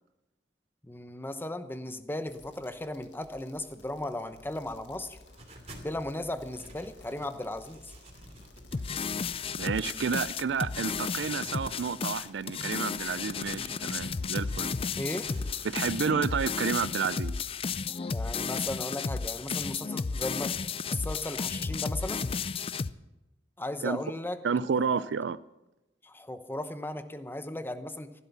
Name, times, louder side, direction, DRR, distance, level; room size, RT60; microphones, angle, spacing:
voice 1, 0.8-5.2 5.8-7.9 15.0-15.3 18.1-20.5 20.9-22.2 23.6-24.4 24.7-25.0 26.0-28.1, left 1 dB, 10° left, 0.9 m, -36 dB
sound 1, 2.3-13.1, left 1 dB, 80° left, 1.9 m, -54 dB
sound 2, 5.2-5.9 6.3-7.3 7.6-9.8 10.3-12.2 12.7-14.7 15.0-16.2, right 1 dB, 40° right, 2.8 m, -50 dB
sound 3, 8.7-22.9, left 5 dB, 30° left, 0.4 m, -33 dB
voice 2, 9.6-14.7 15.6-17.3 23.8-24.0 24.4-25.4, right 6 dB, 80° right, 0.5 m, -30 dB
15.0 x 12.0 x 7.2 m
head